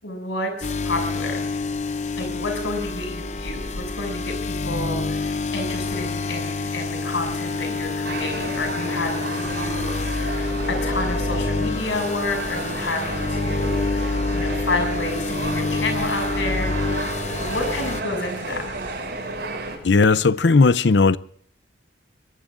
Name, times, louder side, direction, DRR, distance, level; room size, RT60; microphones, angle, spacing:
voice 1, 0.0-1.4 2.2-18.6, left 2 dB, 90° left, 6.7 m, -30 dB
sound 1, 0.6-18.0, left 3 dB, 40° left, 0.8 m, -27 dB
sound 2, 5.6-19.0, right 2 dB, 90° right, 7.2 m, -47 dB
sound 3, 8.0-19.8, right 2 dB, 65° right, 6.2 m, -32 dB
voice 2, 19.8-21.2, left 4 dB, 70° left, 0.6 m, -16 dB
24.0 x 22.5 x 2.6 m
head